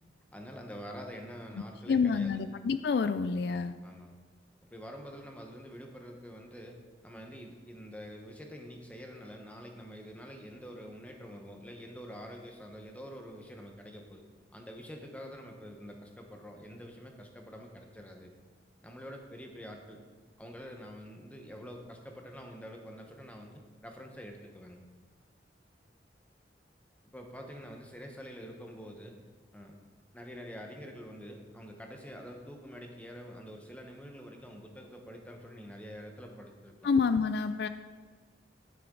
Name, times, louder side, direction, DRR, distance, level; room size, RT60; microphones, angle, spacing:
voice 1, 0.3-2.5 3.8-4.2 4.7-6.8 7.0-14.2 14.5-18.3 18.8-20.0 20.4-24.9 27.1-29.2 29.5-29.8 30.1-36.9, equal, 10° left, 2 dB, 1.1 m, -46 dB
voice 2, 1.9-3.7 36.8-37.7, left 5 dB, 60° left, 11 dB, 0.3 m, -28 dB
10.0 x 9.2 x 3.8 m, 1.5 s
head